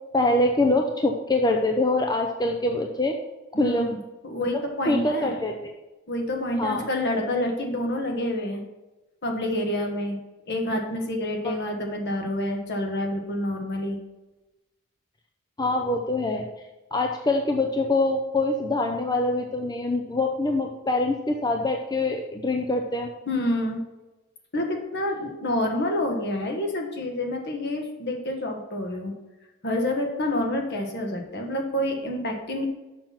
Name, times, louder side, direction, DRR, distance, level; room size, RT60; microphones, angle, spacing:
voice 1, 0.1-3.2 3.6-3.9 4.9-5.5 6.6-6.9 15.6-16.4 16.9-23.1, left 2 dB, 20° left, 2 dB, 0.6 m, -24 dB
voice 2, 3.5-4.0 4.2-5.3 6.1-8.6 9.2-10.2 10.5-14.0 23.3-23.8 24.5-29.1 29.6-32.6, left 1 dB, 50° left, 2 dB, 1.5 m, -28 dB
6.8 x 5.9 x 5.7 m, 1.1 s
head